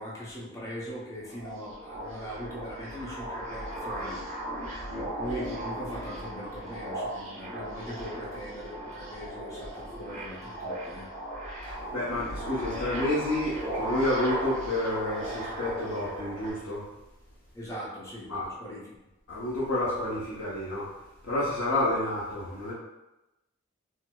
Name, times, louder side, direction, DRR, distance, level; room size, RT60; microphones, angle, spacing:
voice 1, 0.0-4.2 4.9-11.1 17.5-18.9, equal, 15° left, -6 dB, 0.7 m, -40 dB
sound 1, 1.2-16.5, right 1 dB, 35° right, 0.8 m, -37 dB
voice 2, 11.6-16.8 18.3-18.4 19.3-20.9 21.2-22.7, left 1 dB, 70° left, -9 dB, 0.8 m, -29 dB
4.4 x 2.0 x 2.2 m, 0.99 s
head